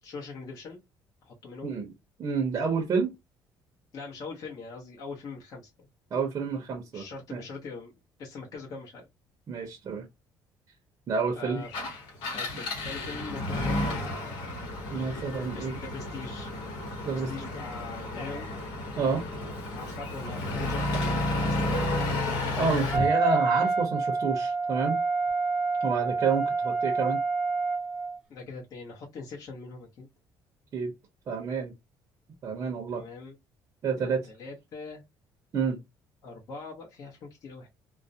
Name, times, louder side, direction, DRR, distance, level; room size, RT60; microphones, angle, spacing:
voice 1, 0.0-0.8 1.2-1.7 3.9-5.7 6.9-7.9 8.2-9.1 11.3-11.7 12.3-13.8 14.1-14.2 14.9-16.5 17.0-18.5 19.2-21.9 28.3-30.1 32.9-33.3 34.0-35.0 36.2-37.7, left 4 dB, 45° left, 0.8 m, -42 dB
voice 2, 1.6-1.9 2.2-3.1 6.1-7.4 9.5-10.1 11.1-11.7 14.9-15.8 17.0-17.4 19.0-19.2 22.6-25.0 25.8-27.2 30.7-30.9 31.3-31.7 32.4-33.0 33.8-34.3 35.5-35.8, right 5 dB, 40° right, 0.6 m, -29 dB
Engine, 11.6-23.1, left 2 dB, 75° left, 1.0 m, -32 dB
Wind instrument woodwind instrument, 22.9-28.2, right 4 dB, 5° right, 0.9 m, -27 dB
2.4 x 2.0 x 2.6 m
cardioid pair, 150°, 8 cm